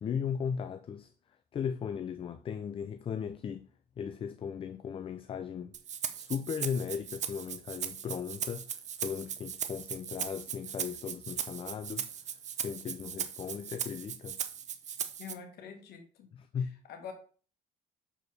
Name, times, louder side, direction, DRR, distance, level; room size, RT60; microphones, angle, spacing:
voice 1, 0.0-1.1 1.5-3.7 4.0-5.8 6.1-12.1 12.6-14.4 16.3-16.7, left 7 dB, 35° left, 0.4 m, -37 dB
Rattle (instrument), 5.7-15.3, right 8 dB, 45° right, 0.7 m, -38 dB
voice 2, 15.2-16.3 16.6-17.1, left 7 dB, 70° left, 1.5 m, -46 dB
6.6 x 4.8 x 4.1 m
cardioid pair, 110°, 17 cm